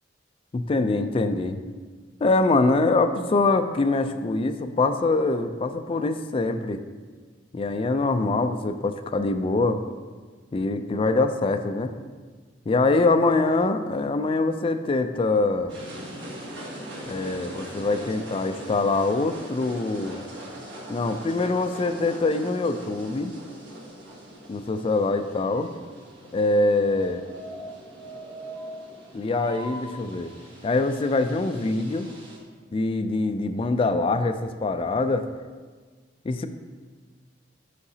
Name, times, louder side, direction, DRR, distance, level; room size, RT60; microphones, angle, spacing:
voice 1, 0.5-1.6 2.2-6.8 7.5-9.8 10.5-11.9 12.7-15.7 17.0-20.2 20.9-23.3 24.5-25.7 26.3-27.2 29.1-30.3 30.6-32.1 32.7-35.3 36.2-36.5, left 3 dB, 30° left, 8 dB, 0.3 m, -24 dB
sound 1, 15.7-32.4, right 1 dB, 75° right, 1.4 m, -41 dB
8.2 x 4.8 x 2.7 m, 1.5 s
head